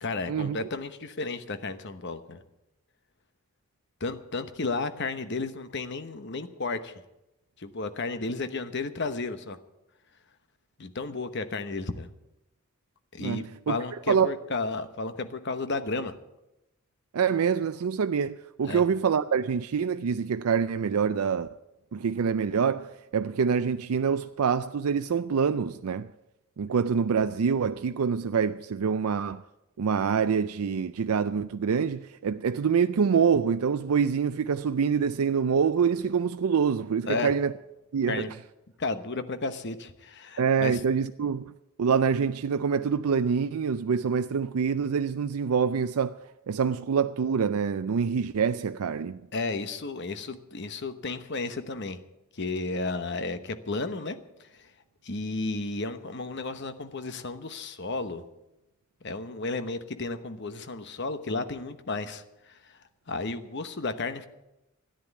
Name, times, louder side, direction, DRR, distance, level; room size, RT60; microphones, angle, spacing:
voice 1, 0.0-2.4 4.0-6.9 7.6-9.6 10.8-12.1 13.1-16.1 18.7-18.8 37.0-37.3 38.1-38.3 38.8-40.8 49.3-52.0 52.3-54.2 55.0-58.2 59.0-62.5 63.1-64.3, left 3 dB, 50° left, 1.0 m, -33 dB
voice 2, 13.2-13.7 14.1-14.3 17.1-21.5 21.9-26.1 26.6-29.4 29.8-37.5 37.9-38.3 40.4-41.5 41.8-46.2 46.5-49.2, right 6 dB, 80° right, 0.4 m, -26 dB
13.0 x 10.5 x 8.2 m
head